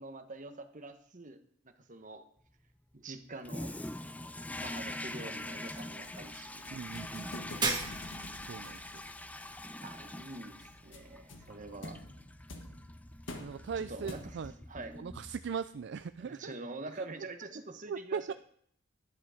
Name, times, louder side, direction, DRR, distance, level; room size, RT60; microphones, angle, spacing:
voice 1, 0.0-1.4 1.6-2.2 2.9-3.7 4.6-6.7 9.8-12.0 13.5-14.4 14.7-15.0 16.2-18.3, right 2 dB, 40° right, 7 dB, 1.2 m, -45 dB
Toilet flush, 3.4-15.8, left 1 dB, 10° left, 0.5 m, -44 dB
sound 1, 5.7-14.6, left 1 dB, 70° left, 1.6 m, -49 dB
voice 2, 6.7-8.0 8.5-8.8 13.4-14.5 14.9-16.5 17.0-17.1 17.9-18.3, right 6 dB, 60° right, 12 dB, 0.4 m, -40 dB
Shatter, 7.6-8.4, right 4 dB, 25° right, 1.7 m, -33 dB
12.0 x 10.5 x 5.0 m, 0.65 s
head